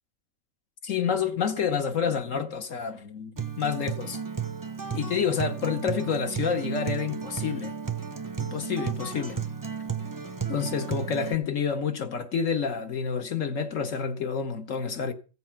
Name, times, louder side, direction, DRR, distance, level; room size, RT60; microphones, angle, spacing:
voice 1, 0.8-4.2 4.9-7.7 8.4-9.4 10.5-15.1, left 6 dB, 70° left, 1.5 m, -28 dB
Acoustic guitar, 3.4-11.3, right 6 dB, 20° right, 0.6 m, -33 dB
15.5 x 7.8 x 5.8 m
omnidirectional pair, 1.4 m